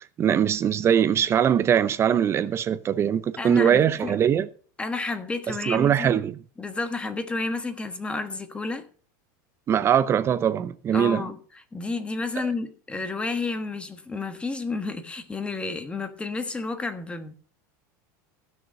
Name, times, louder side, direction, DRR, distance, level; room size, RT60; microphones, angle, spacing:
voice 1, 0.2-4.5 5.5-6.3 9.7-11.2, right 9 dB, 25° right, 0.6 m, -22 dB
voice 2, 3.4-4.2 4.8-6.2 6.6-8.9 10.9-17.3, left 3 dB, 10° left, 1.3 m, -31 dB
15.0 x 6.5 x 5.4 m
supercardioid pair, 140°, 10 cm